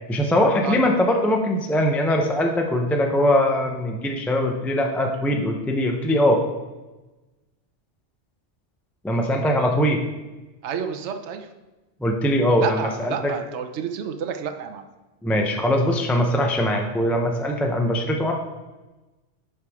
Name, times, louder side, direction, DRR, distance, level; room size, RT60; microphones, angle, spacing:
voice 1, 0.1-6.4 9.0-10.0 12.0-13.1 15.2-18.3, left 1 dB, ahead, 2 dB, 0.6 m, -21 dB
voice 2, 10.6-11.5 12.6-14.9, right 7 dB, 75° right, 7 dB, 1.0 m, -30 dB
11.0 x 4.9 x 3.6 m, 1.1 s
omnidirectional pair, 1.2 m